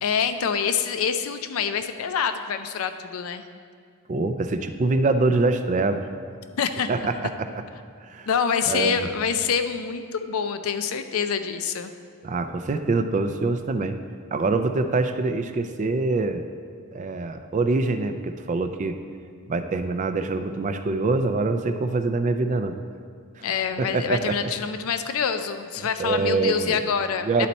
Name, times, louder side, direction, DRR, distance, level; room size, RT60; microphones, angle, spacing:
voice 1, 0.0-3.4 6.6-6.9 8.3-11.9 23.4-27.5, left 6 dB, 70° left, 9 dB, 0.4 m, -26 dB
voice 2, 4.1-6.0 6.9-7.5 8.0-8.3 8.7-9.1 12.2-14.0 14.3-16.4 16.9-19.0 19.5-22.8 23.4-23.5 23.9-24.4 25.8-26.8 27.2-27.5, right 3 dB, 35° right, 9 dB, 0.3 m, -24 dB
10.5 x 4.2 x 4.1 m, 2.2 s
head